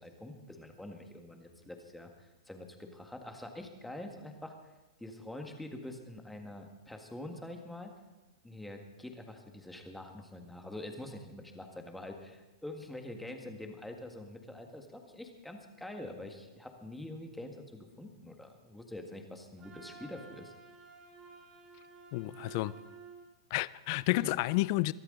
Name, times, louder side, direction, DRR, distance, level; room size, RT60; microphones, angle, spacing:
voice 1, 0.0-4.5 5.0-7.9 8.4-20.5 24.1-24.3, left 1 dB, 5° left, 1.6 m, -45 dB
Wind instrument woodwind instrument, 19.6-23.3, right 5 dB, 25° right, 3.5 m, -52 dB
voice 2, 22.1-22.8 23.5-24.9, left 19 dB, 45° left, 0.4 m, -30 dB
22.5 x 13.0 x 3.8 m
hypercardioid pair, 145°, 3 cm